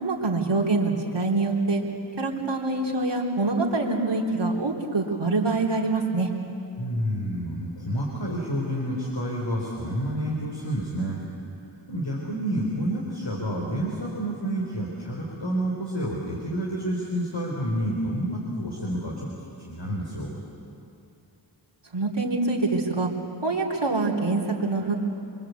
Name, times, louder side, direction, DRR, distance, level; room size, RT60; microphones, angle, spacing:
voice 1, 0.0-1.8 2.2-6.3 21.9-23.1 23.4-24.9, right 3 dB, 60° right, -2 dB, 3.6 m, -25 dB
voice 2, 6.8-11.2 11.9-19.1 19.6-20.3, right 1 dB, 65° left, -3 dB, 4.4 m, -29 dB
27.5 x 23.0 x 8.4 m, 2.6 s
wide cardioid pair, 65°, 47 cm